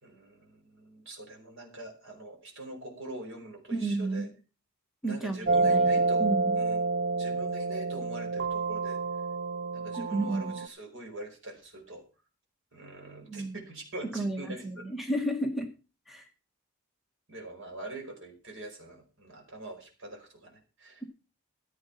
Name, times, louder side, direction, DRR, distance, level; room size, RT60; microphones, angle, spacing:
voice 1, 0.0-4.3 5.0-6.3 6.6-6.8 7.1-9.0 9.7-12.0 12.7-14.9 17.3-21.0, right 1 dB, 60° right, 2 dB, 5.0 m, -44 dB
voice 2, 3.7-4.3 5.0-6.6 10.0-10.6 13.3-13.6 14.1-15.7 16.1-16.2, right 2 dB, ahead, 3 dB, 1.5 m, -32 dB
sound 1, 5.5-10.7, right 3 dB, 40° right, 0.7 m, -28 dB
15.0 x 8.1 x 5.8 m, 0.34 s
head